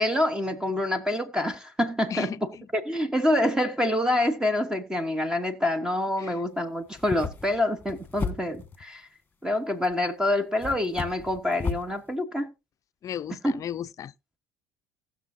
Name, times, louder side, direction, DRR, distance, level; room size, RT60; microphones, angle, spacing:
voice 1, 0.0-9.1 9.4-12.5 13.4-13.5, left 1 dB, 10° right, 1.1 m, -26 dB
voice 2, 2.1-2.7 6.2-6.4 13.0-14.1, left 9 dB, 45° left, 0.5 m, -35 dB
sound 1, 6.9-8.8 9.8-9.9 10.6-11.9, left 5 dB, 20° left, 1.5 m, -34 dB
19.5 x 6.6 x 2.7 m
supercardioid pair, 80°, 8 cm